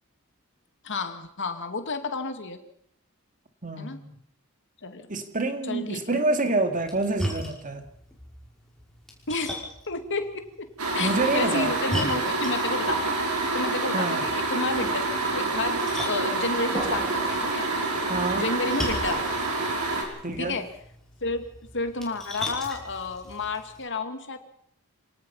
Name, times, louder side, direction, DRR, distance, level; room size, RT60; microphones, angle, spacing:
voice 1, 0.8-2.6 3.8-4.0 4.8-5.1 5.7-6.2 9.3-10.7 10.9-13.2 13.5-17.7 18.3-19.5 20.4-20.7 21.2-24.4, left 3 dB, 55° left, 2.5 m, -31 dB
voice 2, 3.6-4.2 5.1-7.9 11.0-11.7 13.9-14.2 18.1-18.5 20.2-20.6, right 2 dB, 35° right, 2.2 m, -27 dB
Splash splatter, 6.7-23.8, left 1 dB, ahead, 5.7 m, -39 dB
sound 1, 10.8-20.0, right 3 dB, 80° right, 5.8 m, -27 dB
sound 2, 16.7-19.1, right 1 dB, 15° right, 2.9 m, -40 dB
27.0 x 18.5 x 5.7 m
head